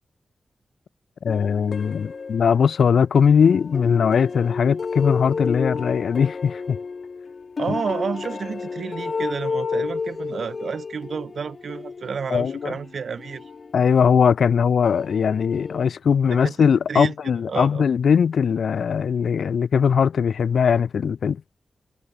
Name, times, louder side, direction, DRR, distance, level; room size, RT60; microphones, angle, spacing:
voice 1, 1.2-6.8 12.3-12.7 13.7-21.4, left 7 dB, 85° left, 2.6 m, -20 dB
sound 1, 1.3-3.0 3.4-14.3 14.8-15.8, left 4 dB, 60° left, 2.5 m, -32 dB
voice 2, 7.6-13.5 16.3-17.1 17.5-17.9, right 6 dB, 75° right, 3.5 m, -30 dB
cardioid pair, 60°, 0 cm